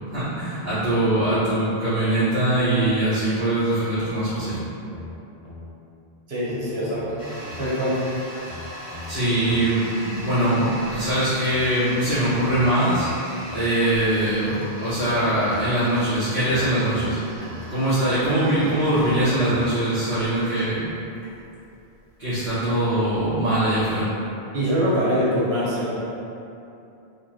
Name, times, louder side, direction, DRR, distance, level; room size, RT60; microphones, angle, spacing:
voice 1, 0.1-4.6 9.1-13.1 13.5-17.2 17.7-20.8 22.2-24.1, right 1 dB, 45° right, -17 dB, 1.4 m, -22 dB
sound 1, 4.5-5.7 6.5-7.7 8.4-9.7 10.5-11.7 12.4-13.7 14.5-15.7 16.4-17.7 18.5-19.7 20.4-20.5, left 3 dB, 40° left, 0.9 m, -40 dB
voice 2, 6.3-7.2 7.6-8.0 24.5-26.0, equal, 75° right, -8 dB, 1.3 m, -23 dB
Toilet flush, 7.2-23.9, equal, 15° left, 0.7 m, -39 dB
4.6 x 2.3 x 3.1 m, 2.7 s
omnidirectional pair, 1.1 m